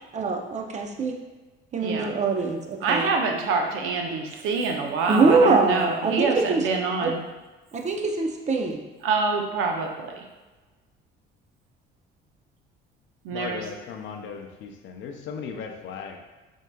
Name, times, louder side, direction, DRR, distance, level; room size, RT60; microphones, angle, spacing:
voice 1, 0.1-1.1 1.7-3.0 5.1-6.7 7.0-7.1 7.7-8.8, right 4 dB, 35° right, 3 dB, 0.5 m, -23 dB
voice 2, 1.8-2.1 2.8-7.2 9.0-10.2 13.2-13.6, right 4 dB, 75° right, 3 dB, 0.6 m, -26 dB
voice 3, 13.3-16.2, left 6 dB, 65° left, 4 dB, 0.5 m, -36 dB
4.4 x 2.7 x 2.2 m, 1.2 s
supercardioid pair, 85°, 21 cm